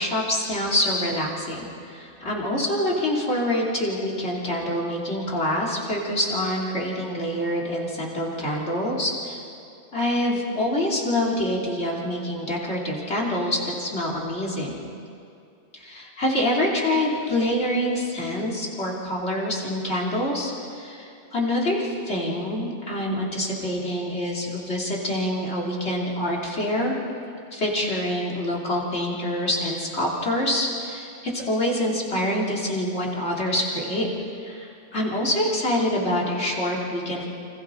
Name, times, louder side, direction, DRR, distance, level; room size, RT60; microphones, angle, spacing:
voice 1, 0.0-9.4 9.9-14.9 15.7-26.9 27.5-34.1 34.4-37.3, left 1 dB, 65° left, -3 dB, 3.2 m, -26 dB
29.0 x 25.5 x 3.8 m, 2.5 s
omnidirectional pair, 1.2 m